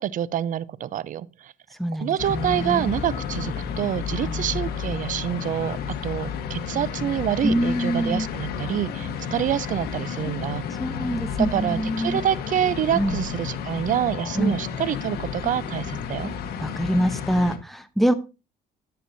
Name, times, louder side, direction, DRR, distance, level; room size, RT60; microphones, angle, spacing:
voice 1, 0.0-1.5 2.0-5.8 6.0-10.7 11.4-16.3, right 10 dB, 50° right, 0.6 m, -27 dB
voice 2, 1.8-3.0 4.2-4.6 7.4-8.3 10.8-12.2 12.9-13.2 14.4-14.6 16.6-18.1, equal, ahead, 0.9 m, -25 dB
sound 1, 2.2-17.6, left 7 dB, 70° left, 1.4 m, -31 dB
10.0 x 9.0 x 2.7 m
cardioid pair, 110°, 17 cm